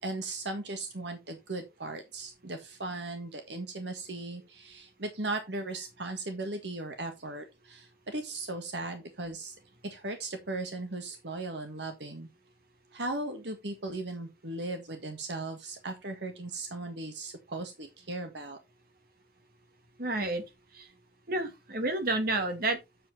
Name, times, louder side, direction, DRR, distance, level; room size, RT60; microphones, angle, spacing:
voice 1, 0.0-9.6 9.8-12.3 12.9-18.6, right 2 dB, 80° right, 1.6 m, -37 dB
voice 2, 20.0-20.4 20.7-20.9 21.3-22.8, right 2 dB, 55° right, 2.2 m, -30 dB
7.7 x 7.4 x 4.1 m
head